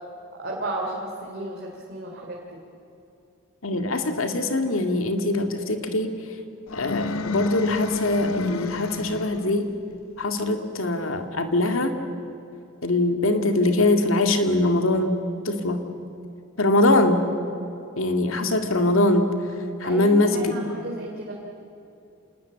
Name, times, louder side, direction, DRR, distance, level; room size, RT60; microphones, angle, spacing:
voice 1, 0.4-2.6 19.8-21.3, right 1 dB, 50° right, -1 dB, 3.3 m, -33 dB
voice 2, 3.6-6.2 6.7-9.7 10.2-12.0 12.8-15.1 15.4-15.9 16.6-17.3 18.0-19.3 19.8-20.6, left 2 dB, 70° left, 6 dB, 2.2 m, -22 dB
sound 1, 6.7-9.6, left 3 dB, 90° left, 0.9 m, -30 dB
27.0 x 20.0 x 8.6 m, 2.8 s
head